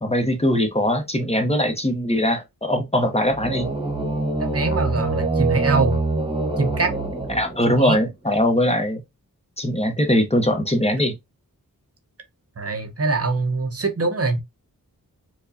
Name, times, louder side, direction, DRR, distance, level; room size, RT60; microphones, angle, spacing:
voice 1, 0.0-3.7 7.3-9.0 9.6-11.1, left 1 dB, 15° left, 0.9 m, -21 dB
sound 1, 3.3-8.0, right 3 dB, 15° right, 1.2 m, -25 dB
voice 2, 4.4-6.0 6.6-6.9 7.7-8.0 12.6-14.4, right 3 dB, 40° right, 0.7 m, -23 dB
4.5 x 2.3 x 2.7 m
wide cardioid pair, 65°, 35 cm